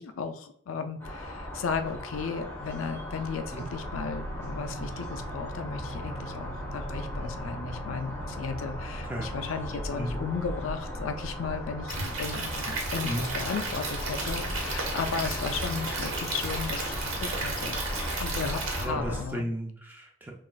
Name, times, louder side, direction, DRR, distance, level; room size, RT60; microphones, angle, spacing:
voice 1, 0.0-17.8 18.2-19.4, left 5 dB, 80° left, 8 dB, 0.4 m, -35 dB
sound 1, 1.0-19.2, left 1 dB, 10° left, 1.1 m, -37 dB
sound 2, 3.1-19.3, right 2 dB, 60° right, 0.6 m, -44 dB
Stream / Liquid, 11.9-18.8, right 3 dB, 90° right, 1.0 m, -34 dB
voice 2, 18.8-20.3, equal, 10° right, 0 dB, 0.5 m, -34 dB
5.8 x 2.4 x 2.3 m, 0.64 s
head